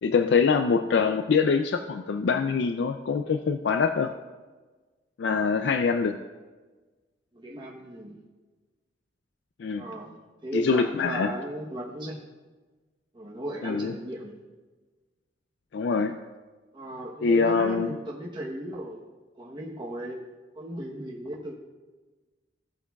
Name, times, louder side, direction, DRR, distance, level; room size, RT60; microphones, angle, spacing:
voice 1, 0.0-4.1 5.2-6.1 9.6-9.8 10.5-11.3 13.6-13.9 15.7-16.2 17.2-18.0, left 5 dB, 75° left, 7 dB, 0.4 m, -24 dB
voice 2, 7.3-8.2 9.8-12.2 13.1-14.4 16.7-19.0 19.4-20.2 20.5-21.5, right 1 dB, 25° right, -4 dB, 1.0 m, -36 dB
15.0 x 8.5 x 2.3 m, 1.3 s
head